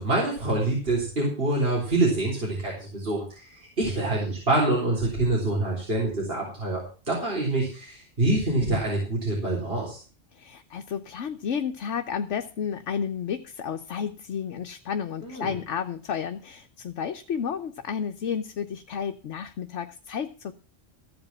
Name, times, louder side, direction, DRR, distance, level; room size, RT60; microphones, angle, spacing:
voice 1, 0.0-10.0 15.2-15.5, right 2 dB, 55° right, -4 dB, 4.1 m, -26 dB
voice 2, 10.3-20.5, left 7 dB, 80° left, 7 dB, 1.2 m, -32 dB
15.0 x 5.3 x 7.2 m, 0.38 s
omnidirectional pair, 1.2 m